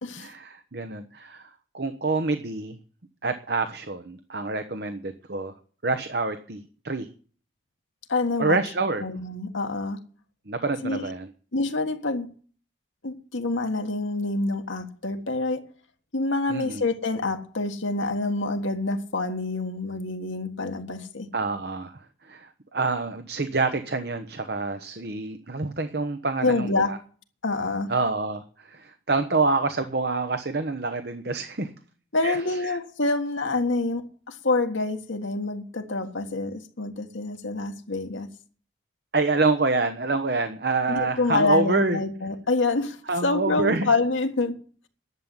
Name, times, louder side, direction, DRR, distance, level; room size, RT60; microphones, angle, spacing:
voice 1, 0.2-2.8 3.2-5.5 5.8-7.1 8.4-9.0 10.5-11.3 16.5-16.8 21.3-22.0 22.3-27.0 27.9-28.4 28.7-31.7 32.2-32.4 32.6-32.8 39.1-42.0 43.1-43.9, right 3 dB, 55° right, 1.0 m, -27 dB
voice 2, 8.1-8.6 9.0-10.0 10.8-11.0 11.5-12.3 13.0-15.6 16.1-21.3 26.4-26.9 27.4-27.9 32.1-38.3 40.9-44.6, left 3 dB, 80° left, 1.7 m, -27 dB
11.0 x 7.5 x 9.8 m
head